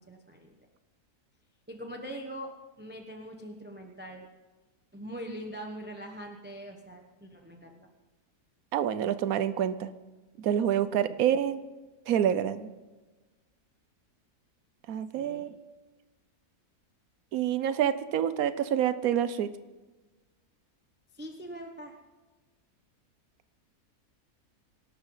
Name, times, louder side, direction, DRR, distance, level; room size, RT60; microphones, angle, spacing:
voice 1, 0.1-0.5 1.7-2.5 2.8-4.3 4.9-7.9 15.1-15.5 21.1-21.9, equal, 10° right, 3 dB, 1.0 m, -42 dB
voice 2, 8.7-9.9 10.4-11.6 12.1-12.7 14.9-15.5 17.3-19.5, right 10 dB, 70° right, 13 dB, 1.2 m, -27 dB
25.5 x 12.0 x 4.0 m, 1.2 s
omnidirectional pair, 1.6 m